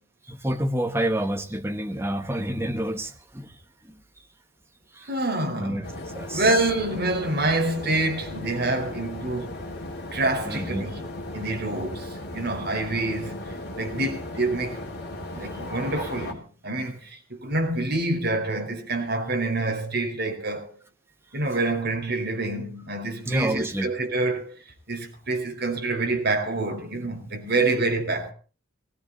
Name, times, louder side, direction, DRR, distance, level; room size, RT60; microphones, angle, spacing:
voice 1, 0.3-3.5 3.9-4.0 4.9-5.1 5.6-5.8 6.1-6.5 10.5-10.9 23.2-23.9, right 1 dB, 10° right, 1.4 m, -28 dB
voice 2, 5.1-5.8 6.3-9.5 10.1-11.0 11.3-14.8 15.3-20.7 21.3-28.3, right 2 dB, 50° right, 4.7 m, -27 dB
sound 1, 5.8-16.3, left 1 dB, 50° left, 3.4 m, -36 dB
18.5 x 17.0 x 4.1 m
head